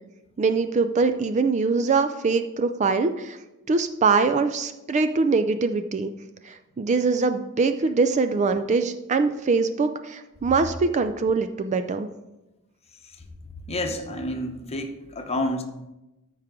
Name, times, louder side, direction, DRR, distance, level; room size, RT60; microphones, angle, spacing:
voice 1, 0.4-3.4 3.7-6.1 6.4-12.1, right 4 dB, 30° right, 9 dB, 0.4 m, -23 dB
voice 2, 13.7-15.6, left 1 dB, 30° left, 4 dB, 0.9 m, -29 dB
13.5 x 4.8 x 3.6 m, 0.98 s
head